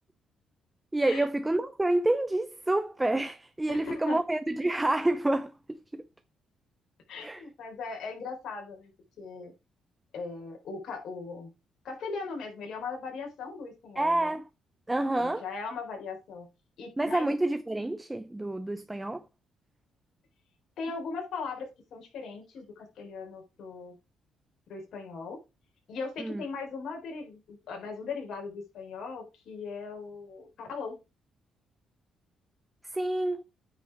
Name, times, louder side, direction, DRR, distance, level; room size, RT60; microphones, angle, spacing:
voice 1, 0.9-6.0 7.2-7.4 14.0-14.5 14.9-15.4 17.0-19.2 26.2-26.4 32.9-33.4, right 1 dB, 15° right, 0.7 m, -28 dB
voice 2, 3.7-4.2 7.1-8.9 9.2-9.5 10.1-11.5 11.8-14.4 15.2-16.5 16.8-17.3 20.8-23.9 24.7-25.4 25.9-31.0, left 4 dB, 70° left, 4.0 m, -39 dB
9.1 x 5.6 x 4.7 m
cardioid pair, 90°, 0 cm